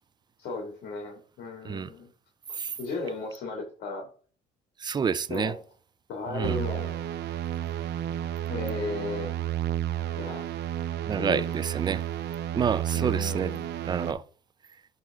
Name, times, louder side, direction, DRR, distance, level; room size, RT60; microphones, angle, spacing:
voice 1, 0.4-2.1 2.5-4.1 5.3-5.5 6.1-7.0 8.5-9.3 10.2-10.6 11.2-11.8 12.9-13.7, left 3 dB, 70° left, 2.6 m, -35 dB
voice 2, 4.8-5.5 6.3-6.6 11.1-12.0 12.5-13.5 13.8-14.2, right 6 dB, 25° right, 0.5 m, -28 dB
sound 1, 6.4-14.1, right 11 dB, 80° right, 0.8 m, -31 dB
10.5 x 4.1 x 3.7 m
cardioid pair, 110°, 17 cm